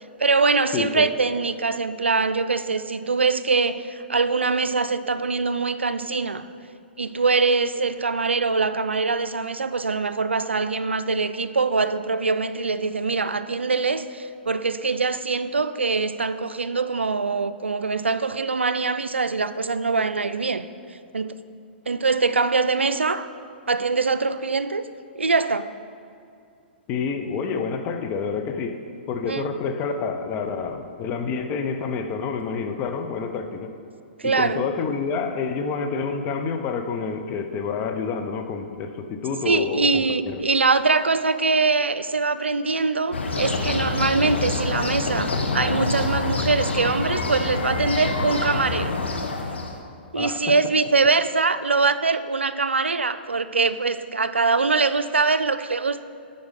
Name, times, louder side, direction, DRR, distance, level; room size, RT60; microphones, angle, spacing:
voice 1, 0.2-6.5 7.0-20.7 21.1-21.4 21.9-23.3 23.7-24.8 25.2-25.7 29.3-29.5 34.2-34.6 39.4-49.0 50.1-56.0, right 4 dB, 90° right, 12 dB, 0.4 m, -23 dB
voice 2, 0.7-1.0 26.9-28.8 29.1-33.7 34.2-40.4 50.1-50.4, left 5 dB, 30° left, 6 dB, 0.6 m, -28 dB
sound 1, 43.1-49.8, left 3 dB, 80° left, 0.9 m, -26 dB
8.0 x 5.4 x 5.2 m, 2.4 s
figure-of-eight pair, 120°, 6 cm